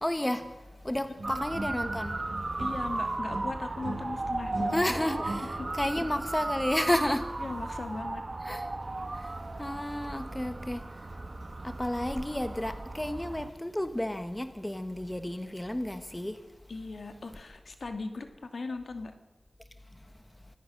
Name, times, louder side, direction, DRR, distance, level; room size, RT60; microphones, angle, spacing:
voice 1, 0.0-2.2 4.7-7.3 8.4-8.7 9.1-11.2 11.6-16.4 19.9-20.1, left 1 dB, 15° left, 9 dB, 1.3 m, -32 dB
Motor vehicle (road) / Siren, 1.2-13.5, right 2 dB, 40° right, 1.3 m, -36 dB
sound 1, 1.2-3.0 3.3-5.9, right 2 dB, 90° right, 4.8 m, -40 dB
voice 2, 2.6-4.9 5.6-5.7 7.4-8.2 16.7-18.3 18.5-19.1, left 3 dB, 65° left, 6 dB, 2.5 m, -38 dB
25.0 x 16.5 x 6.5 m, 1.3 s
wide cardioid pair, 80°, 0 cm